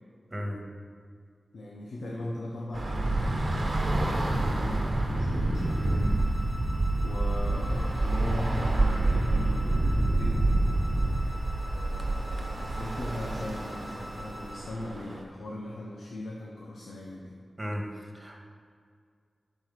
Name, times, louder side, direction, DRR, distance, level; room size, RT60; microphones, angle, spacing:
voice 1, 0.3-0.6 17.6-17.9 18.1-18.4, equal, 30° right, 1 dB, 2.0 m, -34 dB
voice 2, 1.5-3.4 4.0-6.1 7.0-10.5 11.7-17.4, left 1 dB, 85° left, -3 dB, 1.0 m, -39 dB
Bus / Traffic noise roadway noise, 2.7-15.2, right 2 dB, 50° right, 1.2 m, -27 dB
sound 1, 5.5-14.5, equal, 35° left, 2.6 m, -46 dB
10.5 x 4.8 x 6.1 m, 2.1 s
cardioid pair, 45°, 0 cm